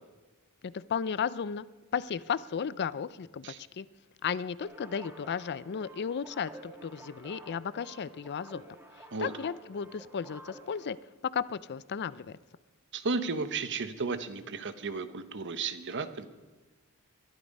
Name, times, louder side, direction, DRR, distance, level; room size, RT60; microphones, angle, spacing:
voice 1, 0.6-1.7 1.9-3.9 4.2-8.6 9.2-11.0 11.3-12.4, left 7 dB, 50° left, 18 dB, 0.4 m, -34 dB
sound 1, 4.6-10.9, right 1 dB, 10° right, 1.6 m, -51 dB
voice 2, 12.9-16.3, right 4 dB, 55° right, 11 dB, 1.0 m, -34 dB
22.0 x 12.0 x 5.4 m, 1.3 s
head